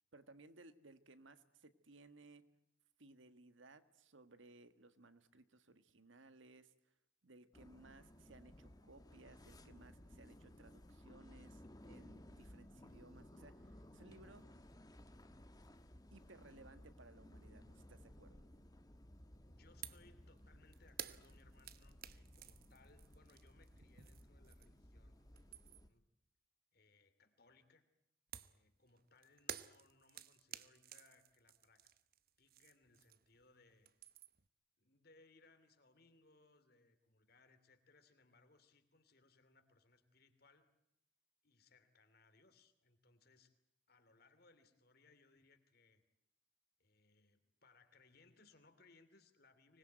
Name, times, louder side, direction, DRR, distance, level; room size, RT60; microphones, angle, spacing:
voice 1, 0.1-2.4 3.0-6.9 7.2-14.5 16.1-18.4, right 2 dB, 75° right, 11 dB, 1.6 m, -62 dB
sound 1, 7.5-25.9, left 1 dB, 20° left, 1.2 m, -59 dB
voice 2, 19.5-25.2 25.9-26.0 26.7-27.8 28.5-31.9 32.4-33.9 34.8-40.7 41.4-43.5 43.9-46.0 46.8-49.8, left 3 dB, 50° left, 9 dB, 2.8 m, -69 dB
sound 2, 19.8-20.1 20.4-24.9 25.2-26.0 28.3-33.4 33.7-34.5, right 10 dB, 50° right, 0.9 m, -53 dB
25.0 x 20.5 x 9.2 m, 0.79 s
head